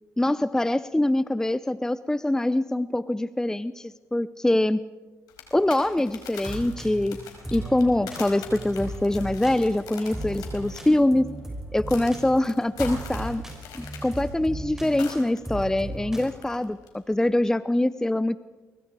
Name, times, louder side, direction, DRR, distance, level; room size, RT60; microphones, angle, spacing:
voice 1, 0.2-4.8 5.5-7.2 7.5-11.3 11.7-13.4 13.7-18.4, left 1 dB, 10° left, 16 dB, 0.6 m, -24 dB
sound 1, 5.3-15.4 15.6-16.9 17.2-17.3, left 6 dB, 80° left, 4.8 m, -44 dB
sound 2, 6.4-16.3, right 1 dB, 5° right, 6.7 m, -36 dB
24.0 x 23.5 x 4.8 m, 1.3 s
supercardioid pair, 65°, 6 cm